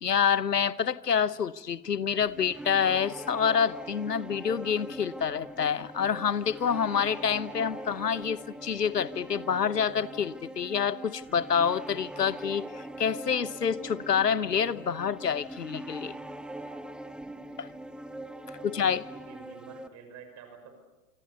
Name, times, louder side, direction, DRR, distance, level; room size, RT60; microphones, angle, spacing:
voice 1, 0.0-16.1 17.6-17.7 18.6-19.0, left 7 dB, 85° left, 19 dB, 1.0 m, -27 dB
sound 1, 2.2-19.9, right 1 dB, ahead, 0.9 m, -42 dB
voice 2, 18.4-20.8, right 5 dB, 35° right, 6 dB, 5.8 m, -49 dB
26.0 x 26.0 x 6.9 m, 1.1 s
figure-of-eight pair, 95°, 47 cm